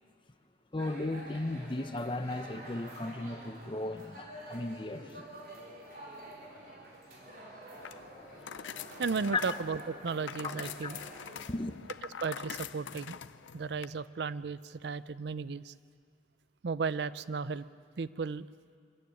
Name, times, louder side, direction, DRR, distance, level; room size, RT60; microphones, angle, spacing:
voice 1, 0.7-5.2 9.3-9.4 10.4-10.9 11.5-11.7, left 2 dB, 25° left, 0.7 m, -36 dB
sound 1, 0.8-11.4, right 1 dB, 50° right, 4.2 m, -48 dB
sound 2, 7.8-13.9, left 8 dB, 90° left, 0.6 m, -45 dB
voice 2, 9.0-11.0 12.2-13.2 13.5-15.7 16.6-17.6 18.0-18.5, right 5 dB, 65° right, 0.5 m, -35 dB
23.5 x 14.0 x 9.4 m
head